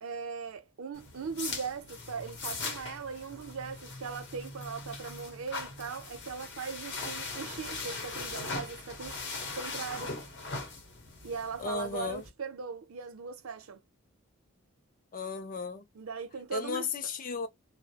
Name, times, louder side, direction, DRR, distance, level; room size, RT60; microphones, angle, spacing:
voice 1, 0.0-9.2 9.5-10.2 11.2-13.8 15.9-16.9, right 5 dB, 80° right, 0.5 m, -39 dB
sound 1, 0.9-12.3, left 3 dB, 55° left, 0.8 m, -40 dB
voice 2, 11.6-12.2 15.1-15.8 16.5-17.5, left 5 dB, 40° left, 0.3 m, -35 dB
2.2 x 2.0 x 2.7 m
head